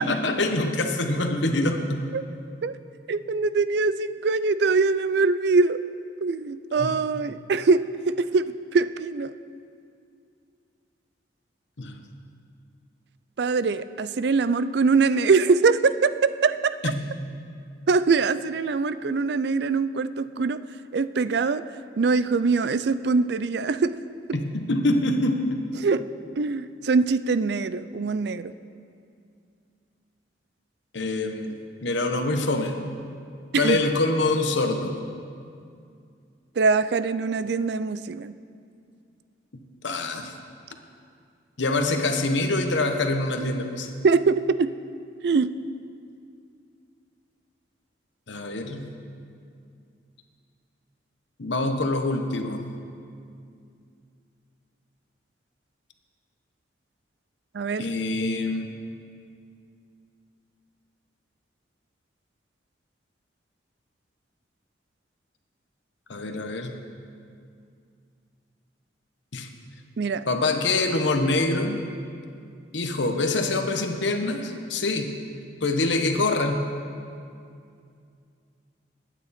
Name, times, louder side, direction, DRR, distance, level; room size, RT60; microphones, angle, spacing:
voice 1, 0.0-2.0 6.8-7.0 11.8-12.0 16.8-17.0 24.3-25.4 30.9-31.5 31.8-32.8 33.5-34.9 39.8-40.3 41.6-43.9 48.3-48.9 51.4-52.6 57.8-58.7 66.1-66.8 69.3-69.5 70.3-71.8 72.7-75.1 75.6-76.7, left 2 dB, 75° left, 5 dB, 1.1 m, -25 dB
voice 2, 3.1-5.8 6.2-9.3 13.4-16.9 17.9-20.6 20.9-21.6 22.0-24.0 25.8-26.1 26.4-28.5 33.5-33.8 36.6-38.3 44.0-44.7 45.2-45.5 57.5-57.9 70.0-70.2, right 4 dB, 60° right, 14 dB, 0.4 m, -23 dB
21.5 x 9.2 x 4.2 m, 2.4 s
head